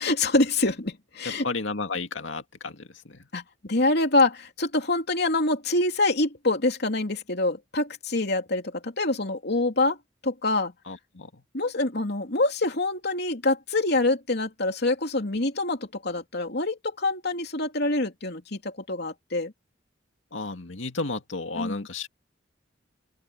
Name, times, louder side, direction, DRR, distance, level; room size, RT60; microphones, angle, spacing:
voice 1, 0.0-1.4 3.3-10.0 10.2-10.7 11.5-19.5 21.6-21.9, left 2 dB, 60° left, 3.1 m, -25 dB
voice 2, 1.2-3.3 10.9-11.4 20.3-22.1, left 3 dB, 85° left, 2.1 m, -33 dB
open air
head